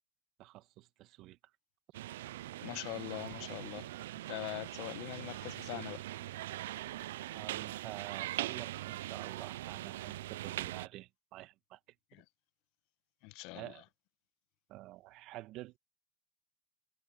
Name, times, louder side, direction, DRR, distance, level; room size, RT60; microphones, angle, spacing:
voice 1, 0.4-1.4 7.3-11.8 13.5-13.8 14.7-15.8, right 17 dB, 65° right, 1.4 m, -48 dB
sound 1, 1.9-10.9, right 15 dB, 85° right, 0.4 m, -41 dB
voice 2, 2.6-3.9 4.3-6.0 12.1-12.2 13.2-13.7, left 23 dB, 70° left, 1.1 m, -42 dB
hypercardioid pair, 80°, 0 cm